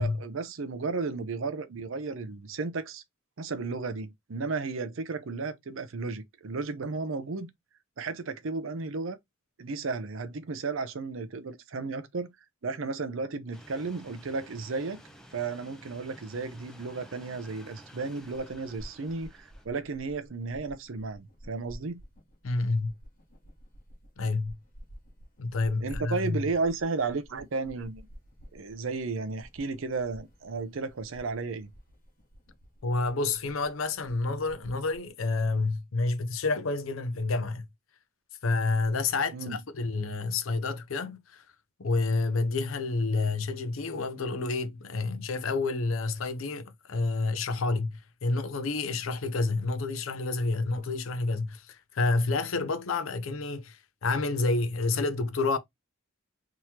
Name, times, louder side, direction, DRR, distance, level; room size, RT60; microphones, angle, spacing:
voice 1, 0.0-3.0 3.4-7.5 8.0-9.2 9.6-12.3 12.6-15.0 15.3-22.0 25.8-28.0 28.5-31.7 39.3-39.6, right 4 dB, 70° right, 0.6 m, -33 dB
sound 1, 13.5-19.7, equal, 5° left, 0.6 m, -52 dB
sound 2, 18.2-35.1, equal, 45° left, 1.0 m, -51 dB
voice 2, 22.4-22.9 24.2-24.6 25.4-26.4 32.8-37.6 38.4-41.4 41.8-55.6, left 3 dB, 75° left, 0.6 m, -29 dB
3.5 x 3.0 x 2.8 m
head